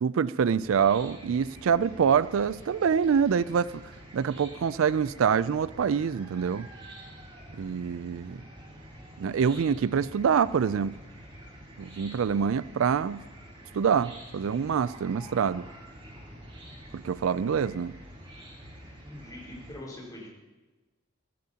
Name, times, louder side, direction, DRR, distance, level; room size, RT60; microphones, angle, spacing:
voice 1, 0.0-3.8 4.1-6.7 7.5-8.4 9.2-10.9 11.8-13.2 13.7-15.7 16.9-17.9, right 7 dB, 80° right, 0.4 m, -25 dB
Chicken rooster / Cricket, 0.6-19.7, equal, 25° right, 4.5 m, -47 dB
voice 2, 19.0-20.3, left 1 dB, 20° left, 4.8 m, -43 dB
23.5 x 15.5 x 2.9 m
head